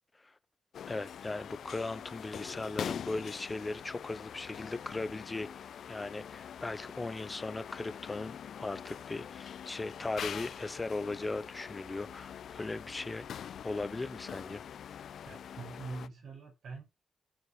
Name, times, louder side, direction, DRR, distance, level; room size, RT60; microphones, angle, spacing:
sound 1, 0.7-16.1, left 8 dB, 80° left, 0.4 m, -44 dB
voice 1, 0.9-13.3 13.6-14.6, left 2 dB, 20° left, 0.7 m, -38 dB
voice 2, 15.2-16.8, right 4 dB, 75° right, 5.4 m, -44 dB
14.5 x 5.9 x 3.2 m
wide cardioid pair, 125°, 0 cm